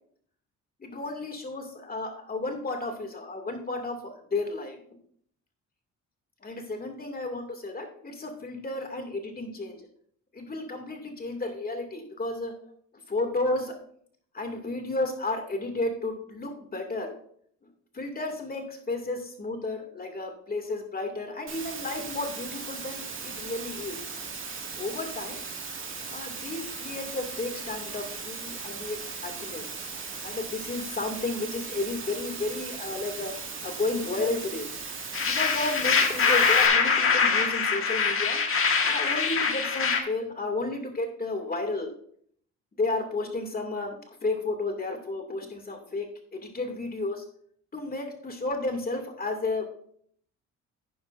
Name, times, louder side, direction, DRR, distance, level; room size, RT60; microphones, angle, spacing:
voice 1, 0.8-4.8 6.4-9.9 10.3-12.5 13.1-13.7 14.3-17.1 17.6-17.7 17.9-24.0 24.8-25.4 26.1-29.7 30.2-33.3 33.6-34.7 35.2-38.4 38.8-41.9 42.8-46.1 46.3-47.2 47.7-49.7, left 2 dB, 30° left, 4 dB, 2.4 m, -32 dB
Water, 21.5-36.7, right 5 dB, 40° right, 2.2 m, -38 dB
sound 1, 35.1-40.0, left 5 dB, 45° left, 1.7 m, -23 dB
11.5 x 9.4 x 2.6 m, 0.62 s
cardioid pair, 90°, 30 cm